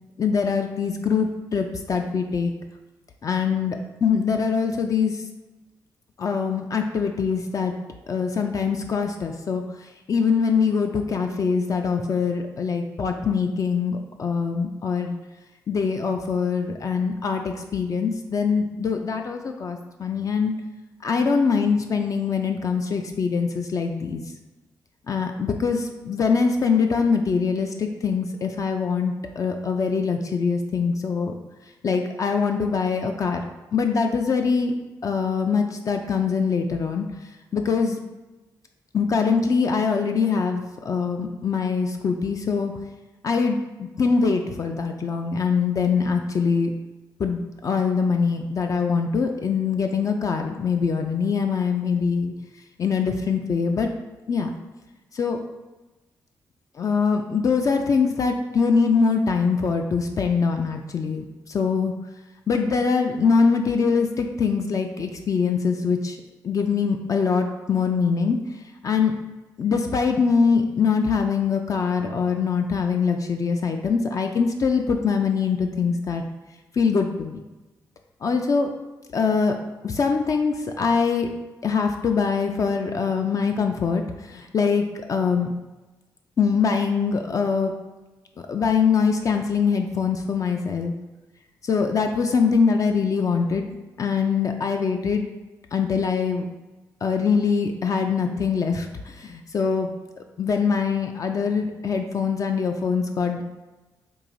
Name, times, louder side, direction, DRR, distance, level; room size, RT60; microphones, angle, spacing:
voice 1, 0.2-2.5 3.2-5.2 6.2-7.7 8.1-9.6 10.1-15.2 15.7-20.5 21.0-24.2 25.1-31.3 31.8-33.4 33.7-34.7 35.0-37.1 37.5-38.0 38.9-42.7 43.2-46.7 47.2-52.3 52.8-53.9 54.3-54.5 55.1-55.4 56.8-61.9 62.5-66.2 66.4-68.4 68.8-69.1 69.6-76.2 76.7-77.4 78.2-78.7 79.1-79.6 79.8-81.3 81.6-85.5 86.4-87.7 88.5-90.9 91.6-93.7 94.0-95.3 95.7-96.5 97.0-99.9 100.4-103.4, left 5 dB, 50° left, 4 dB, 0.4 m, -23 dB
4.6 x 2.8 x 2.6 m, 1.1 s
cardioid pair, 65°, 7 cm